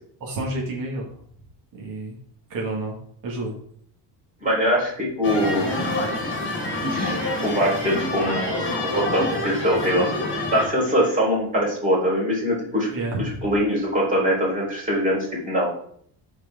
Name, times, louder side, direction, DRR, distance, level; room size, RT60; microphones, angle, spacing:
voice 1, 0.2-1.1 1.7-2.1 2.5-3.0 3.2-3.5 12.9-13.4, right 2 dB, 45° right, -2 dB, 2.1 m, -29 dB
voice 2, 4.4-5.7 6.9-10.2 10.5-12.9 13.2-15.7, equal, 20° right, -5 dB, 4.3 m, -23 dB
sound 1, 5.2-10.6, left 2 dB, 25° left, 3.0 m, -27 dB
13.0 x 4.8 x 3.8 m, 0.63 s
cardioid pair, 155°, 44 cm